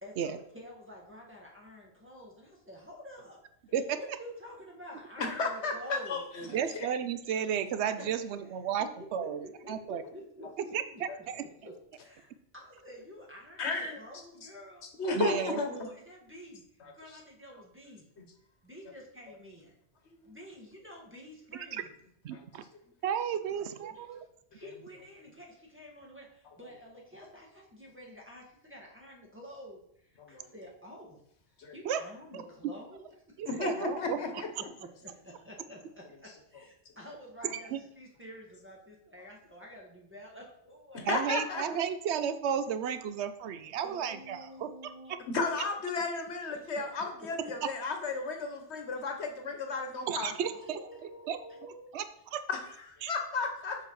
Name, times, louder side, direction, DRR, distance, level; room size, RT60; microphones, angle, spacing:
voice 1, 0.0-3.4 4.0-6.2 8.0-8.2 8.8-8.9 9.2-11.0 11.4-14.9 15.5-18.1 18.6-19.8 20.2-21.9 23.7-24.2 24.5-31.2 31.7-33.8 34.8-41.9 43.8-45.2 45.9-46.0 46.5-46.8 47.2-47.5 50.5-51.9, equal, 10° right, -2 dB, 1.7 m, -49 dB
voice 2, 5.2-6.9 13.6-14.0 15.0-15.8 16.8-16.9 18.2-18.3 20.1-20.2 22.3-22.4 30.2-30.5 31.6-31.7 33.4-34.5 40.9-41.6 45.3-50.3 52.5-52.6 52.9-53.8, left 4 dB, 80° left, 4 dB, 1.4 m, -34 dB
voice 3, 6.5-10.0 10.7-10.8 11.3-11.5 15.2-15.6 21.7-21.8 22.2-22.6 23.0-24.3 31.8-32.0 33.4-34.2 37.4-37.8 41.1-44.9 50.1-51.4 51.9-52.0 52.3-52.4 53.0-53.1, right 8 dB, 80° right, 11 dB, 0.9 m, -33 dB
6.6 x 4.8 x 4.7 m, 0.71 s
omnidirectional pair, 1.1 m